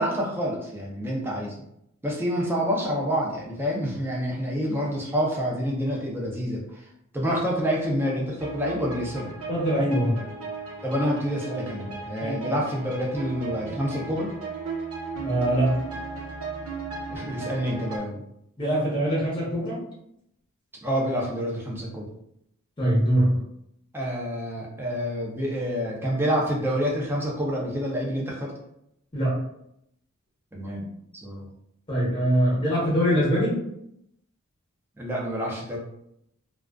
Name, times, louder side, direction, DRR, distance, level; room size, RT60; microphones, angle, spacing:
voice 1, 0.0-1.6 2.0-6.9 7.1-9.3 10.8-14.3 17.1-18.2 20.8-22.1 23.9-28.5 30.5-30.9 31.2-31.5 35.0-35.8, equal, 10° right, -3 dB, 0.5 m, -28 dB
sound 1, 8.4-18.0, right 4 dB, 70° right, 0.8 m, -36 dB
voice 2, 9.5-10.1 12.2-12.3 15.2-15.7 18.6-19.8 22.8-23.3 29.1-29.3 31.9-33.5, equal, 20° left, -6 dB, 0.8 m, -23 dB
2.3 x 2.3 x 2.3 m, 0.76 s
head